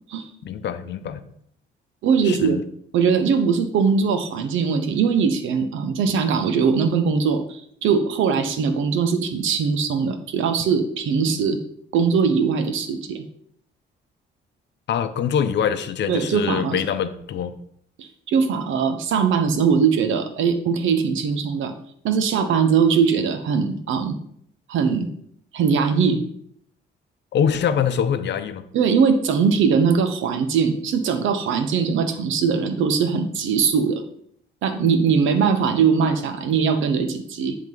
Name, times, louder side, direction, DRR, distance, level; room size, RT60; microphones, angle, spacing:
voice 1, 0.4-1.2 2.2-2.6 14.9-17.5 27.3-28.6, left 8 dB, 60° left, 10 dB, 0.7 m, -24 dB
voice 2, 2.0-2.6 2.9-11.6 11.9-13.2 16.1-16.8 18.0-21.7 22.0-24.2 24.7-25.1 25.5-26.2 28.7-34.0 34.6-37.6, right 6 dB, 80° right, 8 dB, 0.9 m, -21 dB
10.5 x 3.8 x 3.9 m, 0.66 s
cardioid pair, 90°, 20 cm